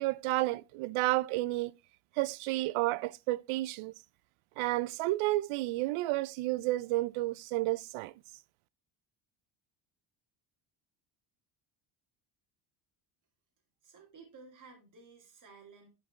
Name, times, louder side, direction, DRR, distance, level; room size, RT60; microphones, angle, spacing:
voice 1, 0.0-1.7 2.2-3.9 4.6-8.1, right 18 dB, 90° right, 0.6 m, -31 dB
voice 2, 13.8-15.9, right 4 dB, 40° right, 2.3 m, -54 dB
10.5 x 5.3 x 3.1 m
cardioid pair, 145°, 48 cm